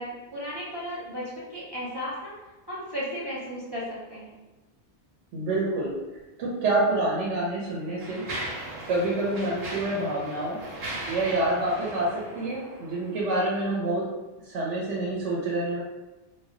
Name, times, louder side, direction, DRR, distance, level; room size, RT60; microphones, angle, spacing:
voice 1, 0.0-2.3 2.7-4.4, equal, 35° right, -8 dB, 0.4 m, -35 dB
voice 2, 5.3-5.9 6.4-8.2 8.9-10.6 11.1-14.1 14.4-15.8, right 2 dB, 85° right, -5 dB, 1.0 m, -27 dB
Mechanisms, 6.6-6.8 7.5-13.2, right 1 dB, 50° right, 0.8 m, -38 dB
2.2 x 2.1 x 3.6 m, 1.1 s
omnidirectional pair, 1.2 m